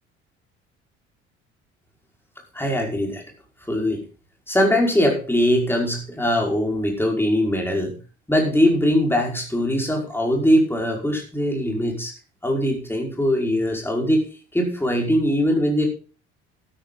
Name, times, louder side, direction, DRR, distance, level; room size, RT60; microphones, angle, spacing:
voice 1, 2.5-3.2 3.7-4.0 4.5-8.0 8.3-12.1 12.4-15.8, equal, 5° left, 1 dB, 5.2 m, -21 dB
12.5 x 11.5 x 4.0 m, 0.35 s
figure-of-eight pair, 55°, 36 cm